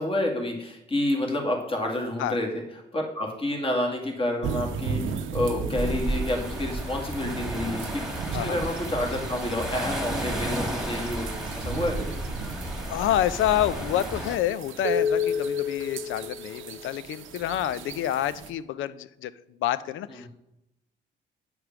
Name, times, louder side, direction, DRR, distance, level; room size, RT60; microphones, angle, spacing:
voice 1, 0.0-2.5 2.9-12.2, left 1 dB, 30° left, 1 dB, 2.1 m, -29 dB
sound 1, 4.4-18.5, equal, 80° right, 0.7 m, -34 dB
sound 2, 5.8-14.4, right 1 dB, 5° right, 1.8 m, -33 dB
voice 2, 12.8-19.3 19.6-20.3, left 12 dB, 80° left, 16 dB, 0.5 m, -28 dB
8.9 x 4.9 x 5.9 m, 0.88 s
cardioid pair, 90°, 20 cm